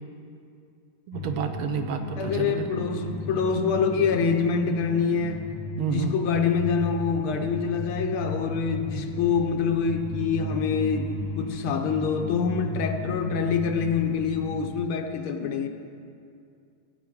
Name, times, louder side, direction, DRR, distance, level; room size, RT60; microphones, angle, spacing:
sound 1, 1.1-14.6, left 1 dB, 45° left, 3.8 m, -35 dB
voice 1, 1.1-2.7 5.8-6.2, right 6 dB, 75° right, 6 dB, 1.6 m, -30 dB
voice 2, 2.2-15.7, left 6 dB, 75° left, 5 dB, 1.6 m, -26 dB
16.5 x 8.8 x 4.7 m, 2.4 s
omnidirectional pair, 2.4 m